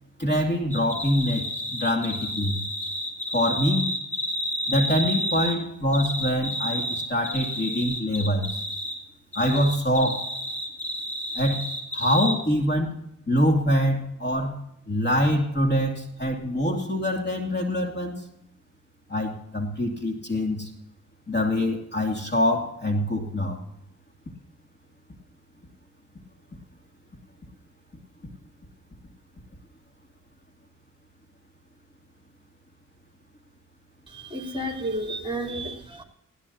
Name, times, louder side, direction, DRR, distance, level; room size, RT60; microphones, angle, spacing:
voice 1, 0.2-1.4 1.7-2.6 3.3-3.9 4.7-8.5 9.3-10.3 11.3-11.6 11.9-12.9 13.3-14.6 14.9-18.2 19.1-20.7 21.3-23.6, equal, 30° left, 2 dB, 2.5 m, -24 dB
sound 1, 0.7-5.6 5.9-9.0 9.3-12.3, equal, 5° left, 3.3 m, -31 dB
voice 2, 34.1-36.0, right 1 dB, 15° right, 2 dB, 3.6 m, -31 dB
19.5 x 16.0 x 2.9 m, 0.78 s
cardioid pair, 70°, 32 cm